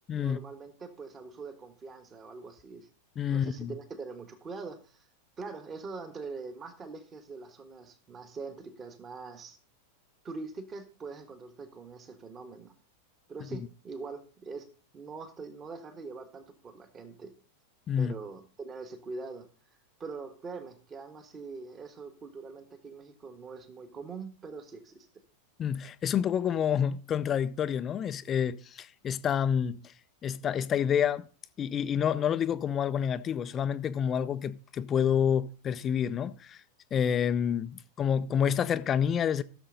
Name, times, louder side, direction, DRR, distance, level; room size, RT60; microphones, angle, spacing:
voice 1, 0.1-2.9 3.3-5.0 5.4-9.6 10.2-12.7 13.3-14.7 14.9-17.3 18.0-19.5 20.0-25.1, right 4 dB, 25° right, 1.5 m, -43 dB
voice 2, 3.2-3.7 17.9-18.1 25.6-29.9 30.2-31.3 31.6-36.6 36.9-39.4, left 8 dB, 25° left, 0.5 m, -28 dB
15.0 x 6.8 x 3.9 m
figure-of-eight pair, 90°, 0 cm